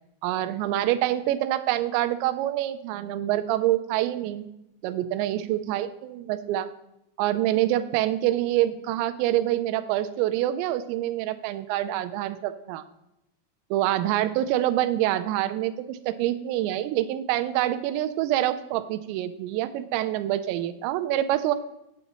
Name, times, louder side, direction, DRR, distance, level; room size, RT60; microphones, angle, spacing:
voice 1, 0.2-4.5 4.8-6.7 7.2-12.8 13.7-21.5, right 13 dB, 85° right, 10 dB, 2.7 m, -26 dB
8.2 x 7.9 x 2.9 m, 0.85 s
omnidirectional pair, 5.3 m